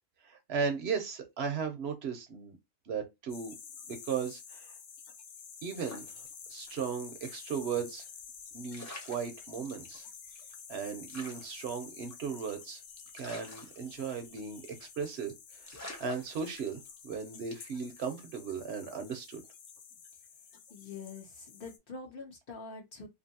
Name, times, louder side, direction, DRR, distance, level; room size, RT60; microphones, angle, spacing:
voice 1, 0.2-2.6 2.9-3.5 3.9-4.7 5.6-6.0 6.5-8.1 8.5-10.1 10.7-12.8 13.1-19.4, right 6 dB, 65° right, 0.8 m, -36 dB
sound 1, 3.3-21.8, left 6 dB, 90° left, 1.0 m, -50 dB
sound 2, 5.7-6.9 7.2-7.3 8.4-8.5 8.7-9.9 10.4-10.5 10.6-10.7 11.1-12.6 13.1-14.4 14.7-15.0 15.3-15.4 15.7-17.0 17.5-17.8, left 1 dB, 20° left, 0.5 m, -48 dB
voice 2, 20.7-23.1, left 4 dB, 50° left, 0.8 m, -45 dB
2.6 x 2.5 x 2.7 m
omnidirectional pair, 1.3 m